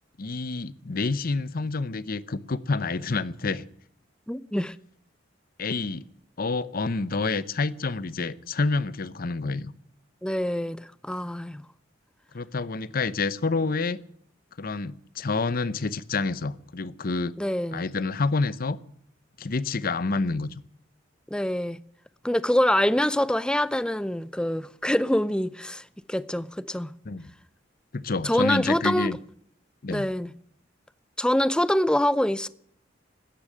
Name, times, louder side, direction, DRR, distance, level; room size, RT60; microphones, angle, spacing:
voice 1, 0.2-3.6 5.6-6.0 6.4-9.7 12.3-14.0 14.6-17.3 17.7-18.8 19.4-20.5 27.0-27.2 27.9-29.2 29.8-30.1, left 3 dB, 50° left, 0.7 m, -28 dB
voice 2, 4.3-4.7 10.2-11.6 17.4-17.8 21.3-21.8 22.2-26.9 28.2-29.2 29.9-30.3 31.2-32.5, left 1 dB, 5° left, 0.6 m, -25 dB
13.5 x 10.0 x 9.8 m
head